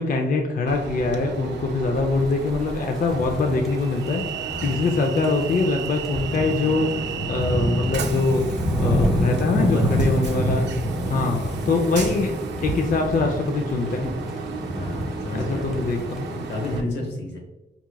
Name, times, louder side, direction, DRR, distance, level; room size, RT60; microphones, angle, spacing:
voice 1, 0.0-4.2 4.6-8.5 8.8-10.7 11.1-12.3 12.6-14.0 15.3-17.1, left 3 dB, 50° left, 3 dB, 0.5 m, -24 dB
Train, 0.7-16.8, right 5 dB, 90° right, 0.4 m, -34 dB
sound 1, 2.5-16.8, equal, ahead, 0.7 m, -28 dB
voice 2, 3.0-3.7 4.5-5.0 9.4-9.9 10.2-10.8 13.9-14.2 14.7-15.8 16.5-17.4, left 2 dB, 85° left, 0 dB, 1.0 m, -33 dB
4.5 x 2.9 x 2.2 m, 0.99 s
cardioid pair, 85°, 18 cm